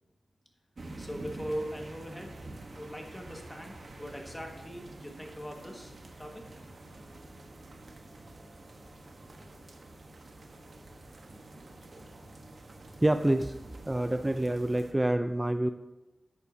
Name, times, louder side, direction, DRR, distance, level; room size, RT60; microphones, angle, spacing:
sound 1, 0.8-14.9, right 2 dB, 55° right, 1.2 m, -48 dB
voice 1, 1.0-6.4, equal, 15° left, 2 dB, 1.7 m, -41 dB
voice 2, 13.0-13.6 13.8-15.7, right 1 dB, 20° right, 8 dB, 0.4 m, -27 dB
11.0 x 8.3 x 2.8 m, 1.1 s
wide cardioid pair, 70°, 0 cm